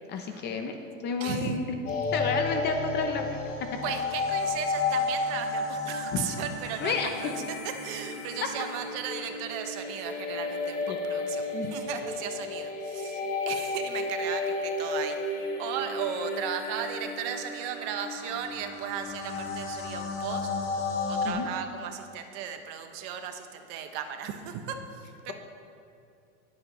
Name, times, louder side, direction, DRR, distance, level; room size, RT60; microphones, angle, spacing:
voice 1, 0.1-0.8 1.0-1.6 2.1-3.3 6.1-6.3 6.8-7.1 10.9-11.0 11.5-11.8 21.2-21.5, left 5 dB, 25° left, 5 dB, 0.5 m, -30 dB
voice 2, 1.2-1.6 3.8-20.5 21.1-25.3, right 8 dB, 45° right, 7 dB, 0.9 m, -36 dB
sound 1, 1.8-21.3, left 3 dB, 45° left, 2.5 m, -33 dB
20.0 x 7.7 x 3.1 m, 2.5 s
supercardioid pair, 155°, 43 cm